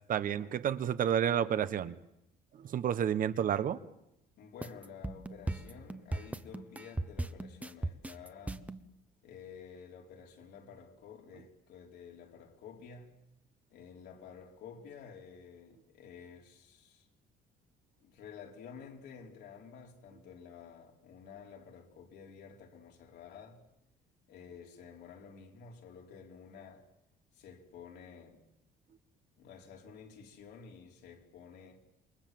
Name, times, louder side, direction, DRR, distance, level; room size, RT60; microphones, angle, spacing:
voice 1, 0.1-1.9 2.6-3.8, right 9 dB, 55° right, 1.2 m, -30 dB
voice 2, 4.4-8.7 9.2-13.1 13.7-17.1 18.0-23.6 24.3-26.9 27.3-28.4 29.4-31.8, left 6 dB, 80° left, 4.4 m, -51 dB
sound 1, 4.6-8.8, right 2 dB, 10° right, 1.1 m, -37 dB
28.0 x 22.0 x 7.8 m
cardioid pair, 110°, 17 cm